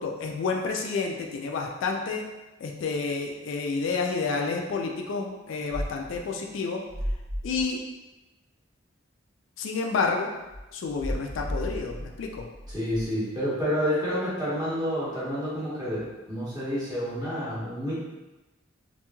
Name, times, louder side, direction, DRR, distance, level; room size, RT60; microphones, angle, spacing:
voice 1, 0.0-2.2 2.6-6.8 7.4-7.8 9.6-10.3 10.7-12.5, left 4 dB, 70° left, 1 dB, 0.3 m, -29 dB
sound 1, 5.7-6.2 6.9-7.6 10.5-13.1, equal, 75° right, 0.9 m, -34 dB
voice 2, 12.7-17.9, equal, 20° right, -9 dB, 1.0 m, -29 dB
3.0 x 2.6 x 2.2 m, 1.1 s
head